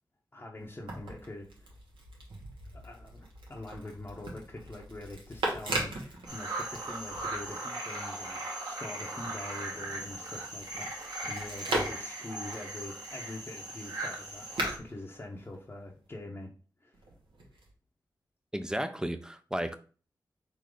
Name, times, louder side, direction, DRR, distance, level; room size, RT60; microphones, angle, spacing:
voice 1, 0.3-1.7 2.7-16.5 16.8-17.1, left 2 dB, 30° left, 0.9 m, -44 dB
sound 1, 0.6-7.6 8.0-16.1 16.9-17.7, right 2 dB, 85° right, 1.4 m, -40 dB
sound 2, 6.3-14.8, right 2 dB, 50° right, 1.6 m, -39 dB
voice 2, 18.5-19.8, right 1 dB, 10° right, 0.6 m, -33 dB
3.9 x 2.8 x 4.8 m
cardioid pair, 55°, 8 cm